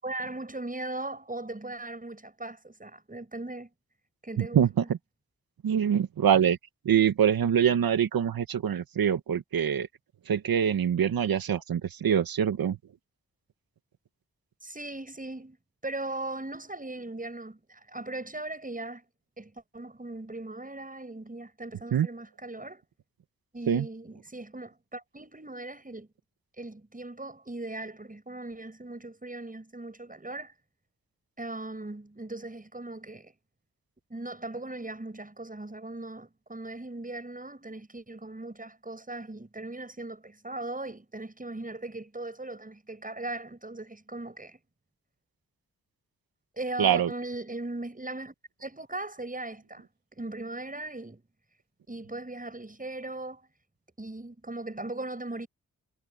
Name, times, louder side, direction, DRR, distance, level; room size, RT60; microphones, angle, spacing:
voice 1, 0.0-3.7 4.2-4.9 14.6-15.6 15.8-19.0 19.4-22.8 23.5-26.1 26.6-30.5 31.4-33.3 34.1-44.6 46.6-48.3 48.6-49.9 50.1-51.2 51.9-53.5 54.0-55.5, right 2 dB, 25° right, 7.0 m, -39 dB
voice 2, 4.4-5.0 5.6-6.6 6.8-9.9 10.2-12.8 21.9-22.1 23.7-23.8 46.8-47.1, right 8 dB, 75° right, 1.8 m, -24 dB
supercardioid pair, 45°, 35 cm